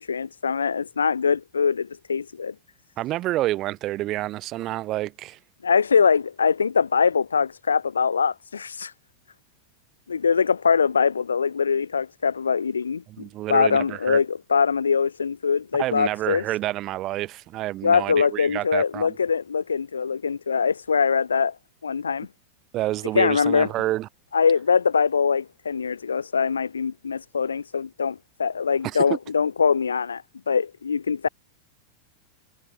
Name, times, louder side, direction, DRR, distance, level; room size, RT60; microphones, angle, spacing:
voice 1, 0.0-2.5 5.6-8.9 10.1-13.0 13.5-16.4 17.8-21.6 21.8-22.3 23.1-23.7 24.3-31.3, left 6 dB, 75° left, 0.3 m, -23 dB
voice 2, 3.0-5.4 13.1-14.2 15.8-19.2 22.7-24.1 28.8-29.0, right 16 dB, 35° right, 0.4 m, -28 dB
figure-of-eight pair, 90°, 0 cm